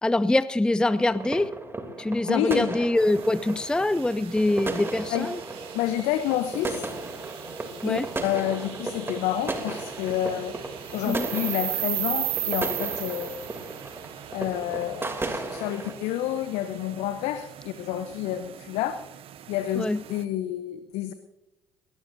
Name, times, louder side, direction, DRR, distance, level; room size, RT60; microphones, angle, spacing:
voice 1, 0.0-1.5 2.0-5.4 7.8-8.0 11.1-11.3 19.8-20.0, left 2 dB, 5° left, 16 dB, 0.5 m, -24 dB
sound 1, 0.9-15.9, right 2 dB, 20° right, 3.0 m, -35 dB
voice 2, 2.2-2.7 5.1-5.3 5.7-6.9 7.8-10.6 10.9-13.4 14.3-19.0 19.5-21.1, left 12 dB, 70° left, 11 dB, 0.8 m, -29 dB
sound 2, 3.0-20.2, right 12 dB, 55° right, 0.9 m, -38 dB
sound 3, 3.9-17.3, right 6 dB, 75° right, 5.5 m, -50 dB
21.0 x 18.5 x 2.7 m, 0.97 s
hypercardioid pair, 55°, 11 cm